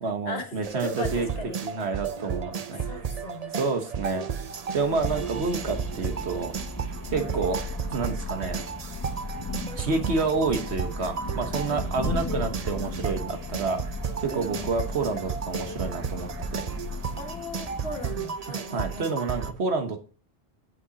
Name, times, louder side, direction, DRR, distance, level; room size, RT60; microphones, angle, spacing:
voice 1, 0.0-1.3 1.6-3.0 3.6-4.3 4.7-6.5 7.1-7.6 7.9-8.6 9.8-13.8 14.2-16.7 18.7-20.1, right 4 dB, 90° right, 5 dB, 1.5 m, -29 dB
sound 1, 0.6-19.5, right 6 dB, 45° right, 0.7 m, -34 dB
voice 2, 0.8-1.6 2.8-3.5 4.8-5.4 7.1-7.4 11.7-12.2 14.3-14.7 17.2-19.1, left 2 dB, 70° left, 2 dB, 1.7 m, -38 dB
Thunder / Rain, 4.4-18.7, left 3 dB, 20° left, 0.7 m, -37 dB
8.4 x 5.8 x 4.0 m, 0.37 s
omnidirectional pair, 1.1 m